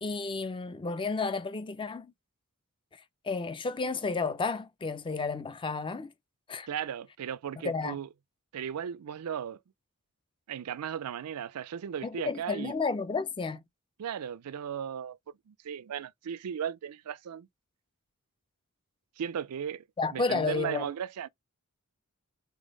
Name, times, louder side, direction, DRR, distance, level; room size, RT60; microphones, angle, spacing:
voice 1, 0.0-2.1 2.9-6.1 6.5-6.7 7.6-8.0 12.0-13.6 20.0-20.9, left 4 dB, 20° left, 0.5 m, -32 dB
voice 2, 6.7-8.1 8.5-9.6 10.5-12.7 14.0-15.2 15.5-17.5 19.2-19.8 20.1-21.3, right 8 dB, 85° right, 0.4 m, -36 dB
3.9 x 3.6 x 3.7 m
head